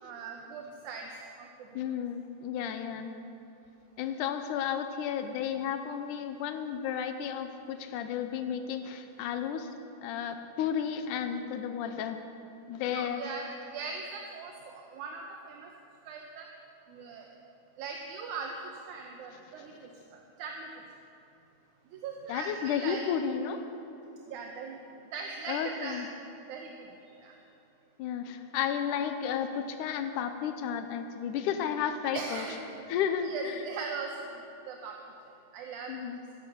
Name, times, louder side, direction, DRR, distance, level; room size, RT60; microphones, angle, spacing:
voice 1, 0.0-1.1 1.4-1.8 12.9-15.7 16.1-16.5 16.9-17.3 17.8-18.5 18.9-19.7 20.1-20.7 21.9-23.0 24.3-24.8 25.1-26.0 26.5-26.9 27.2-27.4 32.1-32.6 33.2-34.3 34.7-35.0 35.5-35.9, right 5 dB, 75° right, 2 dB, 2.2 m, -40 dB
voice 2, 1.7-3.1 4.0-9.7 10.0-12.2 12.7-13.3 19.6-19.7 22.3-23.6 25.5-26.1 28.0-32.5 32.9-33.6 35.9-36.2, left 8 dB, 90° left, 8 dB, 2.2 m, -33 dB
15.0 x 10.0 x 6.8 m, 2.8 s
omnidirectional pair, 3.6 m